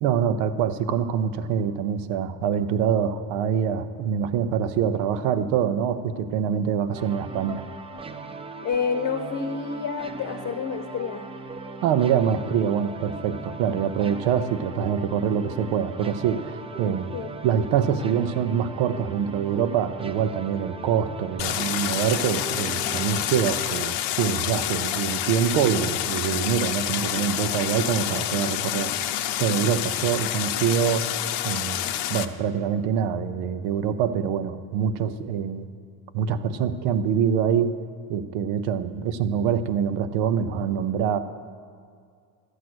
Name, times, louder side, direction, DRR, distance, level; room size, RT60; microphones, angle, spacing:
voice 1, 0.0-7.7 11.8-17.1 17.4-28.9 29.4-31.1 31.4-31.8 32.1-35.7 36.1-37.7 38.1-41.2, right 8 dB, 80° right, 11 dB, 0.8 m, -25 dB
sound 1, 6.9-23.7, right 3 dB, 15° right, 0.5 m, -38 dB
voice 2, 8.6-11.3 17.1-17.3, left 6 dB, 35° left, 7 dB, 0.9 m, -29 dB
Stream, 21.4-32.3, left 12 dB, 65° left, 0.7 m, -28 dB
12.0 x 8.0 x 6.2 m, 2.2 s
supercardioid pair, 105°, 45 cm